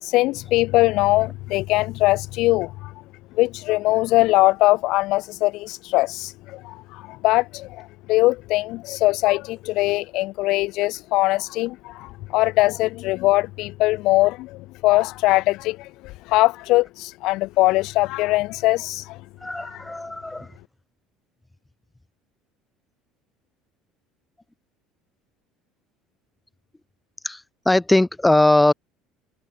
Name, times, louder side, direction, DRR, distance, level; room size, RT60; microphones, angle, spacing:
voice 1, 0.0-2.9 3.4-19.2 19.6-19.8, left 19 dB, 65° left, 2.9 m, -21 dB
voice 2, 19.4-20.4 27.2-27.4 27.7-28.7, left 1 dB, 5° left, 1.0 m, -19 dB
open air
cardioid pair, 130°, 0 cm